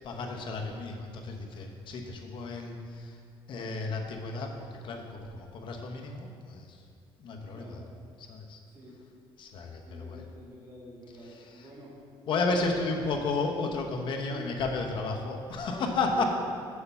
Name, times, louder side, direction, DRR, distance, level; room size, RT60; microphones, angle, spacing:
voice 1, 0.0-3.2 3.5-6.8 7.2-7.8 8.2-8.6 9.4-10.2 11.2-11.7 12.3-16.2, left 3 dB, 55° left, 2 dB, 1.0 m, -33 dB
voice 2, 8.6-9.0 9.8-11.9 14.3-14.4 15.8-15.9 16.1-16.2, right 1 dB, 30° right, -6 dB, 1.9 m, -47 dB
6.7 x 6.7 x 5.5 m, 2.3 s
cardioid pair, 135°, 10 cm